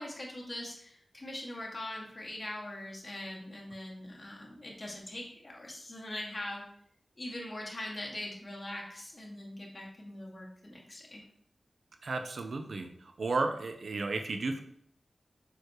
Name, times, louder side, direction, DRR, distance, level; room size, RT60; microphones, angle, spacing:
voice 1, 0.0-6.6 7.2-11.2, left 1 dB, 40° left, -1 dB, 2.2 m, -42 dB
voice 2, 12.0-12.9 13.2-14.6, right 3 dB, 75° right, 6 dB, 0.8 m, -33 dB
7.1 x 6.6 x 3.2 m, 0.67 s
cardioid pair, 55°, 0 cm